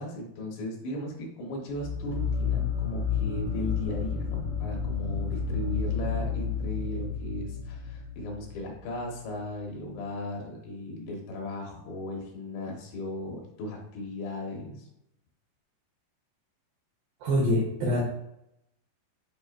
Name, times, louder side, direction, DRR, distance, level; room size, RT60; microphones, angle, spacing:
voice 1, 0.0-14.9, left 1 dB, 70° left, -1 dB, 3.3 m, -37 dB
sound 1, 1.7-9.0, left 6 dB, 50° left, 1.2 m, -31 dB
voice 2, 17.2-18.1, left 1 dB, 75° right, -3 dB, 2.2 m, -25 dB
10.5 x 3.8 x 2.5 m, 0.81 s
omnidirectional pair, 5.3 m